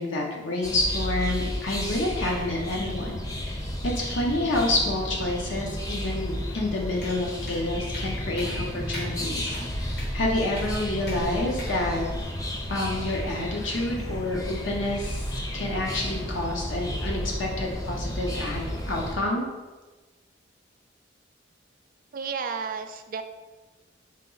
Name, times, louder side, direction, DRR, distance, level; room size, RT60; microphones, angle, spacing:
voice 1, 0.0-12.1 12.7-19.4, left 2 dB, 80° left, -1 dB, 0.6 m, -29 dB
sound 1, 0.6-19.2, equal, 20° left, 0.5 m, -32 dB
sound 2, 7.0-7.2 7.5-7.6 7.9-8.1 8.4-8.6 8.9-9.1 9.5-9.6 10.0-10.1 10.6-10.7 11.1-11.2 11.6-11.8, left 1 dB, 55° left, 1.1 m, -39 dB
voice 2, 22.1-23.2, right 5 dB, 45° right, 7 dB, 0.3 m, -32 dB
4.9 x 2.8 x 3.9 m, 1.2 s
head